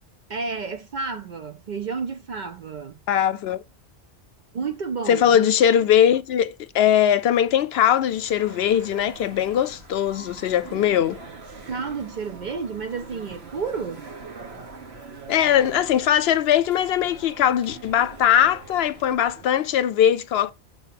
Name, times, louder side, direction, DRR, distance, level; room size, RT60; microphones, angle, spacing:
voice 1, 0.3-3.0 4.5-5.6 11.7-14.1, right 5 dB, 55° right, 0.6 m, -31 dB
voice 2, 3.1-3.6 5.1-11.2 15.3-20.5, left 10 dB, 70° left, 0.8 m, -20 dB
sound 1, 8.0-19.6, right 4 dB, 70° right, 1.4 m, -43 dB
6.9 x 2.7 x 5.7 m
omnidirectional pair, 1.1 m